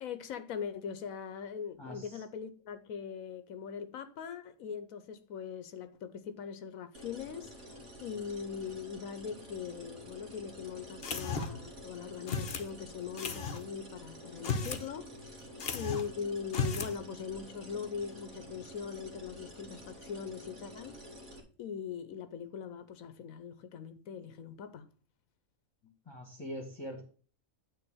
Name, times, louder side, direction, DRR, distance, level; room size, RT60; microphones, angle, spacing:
voice 1, 0.0-21.0 21.6-24.9 25.8-25.9, left 7 dB, 85° left, 1.2 m, -41 dB
voice 2, 1.8-2.2 26.0-27.0, equal, 20° left, 1.6 m, -43 dB
sound 1, 6.9-21.4, equal, 60° right, 1.8 m, -49 dB
sound 2, 11.0-11.7 12.3-12.7 13.2-13.6 14.3-14.9 15.1-15.2 15.6-16.1 16.5-17.0, left 5 dB, 50° left, 1.0 m, -34 dB
9.2 x 3.4 x 6.2 m
omnidirectional pair, 1.4 m